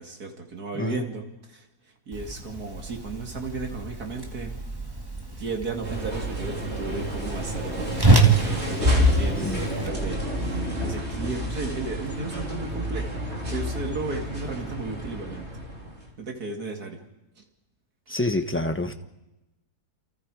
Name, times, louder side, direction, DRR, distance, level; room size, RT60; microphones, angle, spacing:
voice 1, 0.0-1.6 2.1-4.6 5.4-13.2 13.5-15.4 16.2-17.0 17.4-17.5 18.1-18.2, right 3 dB, 75° right, 3 dB, 2.8 m, -34 dB
Whoosh swoosh swish, 2.1-9.9, right 3 dB, 15° right, 2.0 m, -27 dB
sound 1, 5.8-16.1, left 1 dB, 45° right, 4.3 m, -29 dB
voice 2, 18.1-18.9, left 2 dB, 10° left, 7 dB, 1.0 m, -27 dB
28.5 x 28.5 x 4.9 m, 0.95 s
omnidirectional pair, 1.6 m